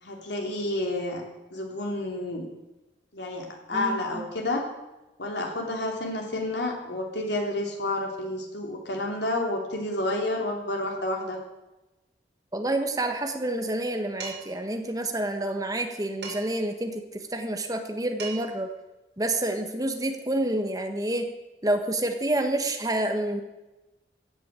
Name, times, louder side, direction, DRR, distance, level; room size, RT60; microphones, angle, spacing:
voice 1, 0.0-1.2 1.5-2.5 3.1-4.6 5.2-11.4, left 1 dB, 90° left, 1 dB, 3.3 m, -30 dB
voice 2, 3.7-4.2 12.5-17.0 17.3-18.7 19.2-21.3 21.6-23.4, right 1 dB, 20° right, 5 dB, 1.4 m, -28 dB
Dishes pots and pans, 14.2-14.6 16.2-16.7 17.9-18.0 18.2-18.7, right 5 dB, 85° right, 6.6 m, -39 dB
15.0 x 6.9 x 8.9 m, 1.0 s
head